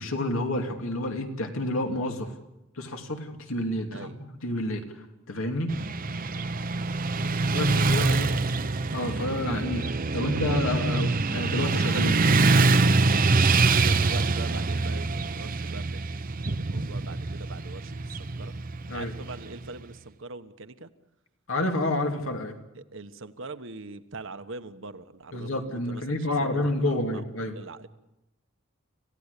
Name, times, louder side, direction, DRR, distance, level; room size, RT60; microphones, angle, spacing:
voice 1, 0.0-2.3 2.8-5.7 7.5-8.3 8.9-9.9 10.1-12.2 18.9-19.1 21.5-22.6 25.3-27.6, left 1 dB, 75° left, 4 dB, 2.9 m, -29 dB
Motorcycle / Traffic noise roadway noise, 5.7-19.8, right 3 dB, 40° right, 0.8 m, -25 dB
voice 2, 8.0-10.1 13.6-18.5 18.9-20.9 22.7-27.2 27.5-27.9, right 3 dB, 65° right, 10 dB, 1.2 m, -43 dB
26.5 x 16.5 x 8.4 m, 0.95 s
head